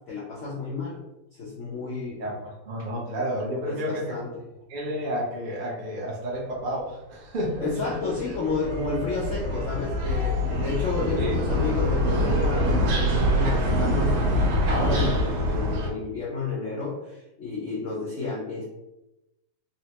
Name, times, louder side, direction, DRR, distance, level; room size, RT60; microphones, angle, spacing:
voice 1, 0.1-1.0 1.4-2.2 3.6-4.3 7.6-12.7 13.1-18.6, left 4 dB, 80° left, -6 dB, 0.6 m, -31 dB
voice 2, 2.2-4.1 4.7-7.9 8.2-8.4 11.1-11.4, equal, 65° right, -4 dB, 0.4 m, -31 dB
sound 1, 7.5-15.9, equal, 85° right, 1.5 m, -25 dB
4.0 x 2.1 x 2.9 m, 0.94 s
omnidirectional pair, 2.2 m